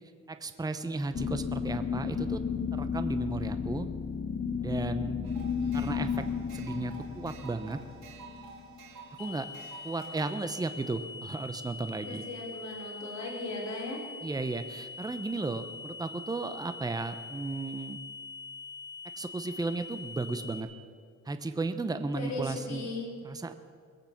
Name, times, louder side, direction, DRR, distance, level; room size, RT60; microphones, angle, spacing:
voice 1, 0.3-2.4 2.7-3.9 4.6-5.2 5.7-6.3 6.5-7.8 9.2-9.5 9.8-12.2 14.2-18.0 19.2-20.7 21.3-22.9 23.2-23.5, right 3 dB, 15° right, 9 dB, 0.8 m, -34 dB
sound 1, 1.1-9.1, left 6 dB, 30° left, 0.8 m, -33 dB
sound 2, 5.2-10.3, right 5 dB, 70° right, 3.1 m, -49 dB
voice 2, 5.6-6.0 12.0-14.0 22.1-23.1, left 2 dB, 60° left, -2 dB, 3.7 m, -38 dB
sound 3, 9.2-20.6, left 4 dB, 85° left, 2.1 m, -44 dB
21.5 x 8.7 x 5.9 m, 2.1 s
cardioid pair, 90°, 30 cm